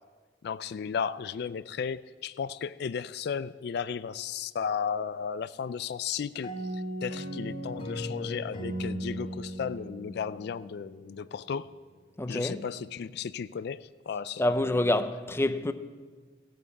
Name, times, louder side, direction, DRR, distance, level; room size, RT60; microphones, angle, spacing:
voice 1, 0.4-11.7 12.3-14.9, left 6 dB, 65° left, 0.4 m, -35 dB
sound 1, 6.4-11.1, equal, 40° left, 2.9 m, -37 dB
voice 2, 12.2-12.6 14.4-15.7, left 1 dB, 15° left, 0.6 m, -27 dB
15.0 x 9.2 x 8.5 m
head